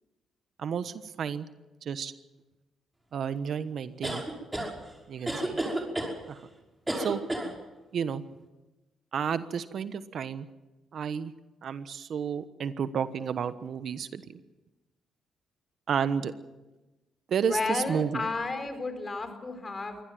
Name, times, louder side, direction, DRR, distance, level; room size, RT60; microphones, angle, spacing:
voice 1, 0.6-1.5 1.9-2.1 3.1-4.2 5.1-5.6 6.3-6.4 7.0-7.2 7.9-8.2 9.1-10.5 10.9-11.3 11.6-14.2 15.9-16.3 17.3-18.3, right 7 dB, 65° right, 13 dB, 1.2 m, -31 dB
sound 1, 4.0-4.7 5.3-6.1 6.9-7.5, right 1 dB, 15° right, 5.7 m, -30 dB
voice 2, 17.4-20.0, left 3 dB, 35° left, 9 dB, 4.5 m, -32 dB
23.5 x 17.5 x 7.7 m, 1.1 s
supercardioid pair, 70°, 0 cm